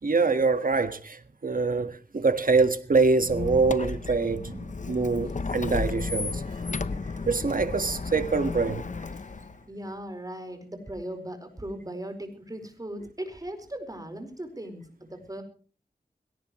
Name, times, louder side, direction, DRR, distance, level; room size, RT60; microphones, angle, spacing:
voice 1, 0.0-6.4 7.3-8.8, right 4 dB, 60° right, 1.7 m, -25 dB
Squeak, 3.2-9.6, left 4 dB, 50° left, 0.9 m, -33 dB
voice 2, 9.7-15.4, right 1 dB, 20° right, 4.8 m, -38 dB
22.0 x 17.5 x 3.2 m
wide cardioid pair, 85°, 16 cm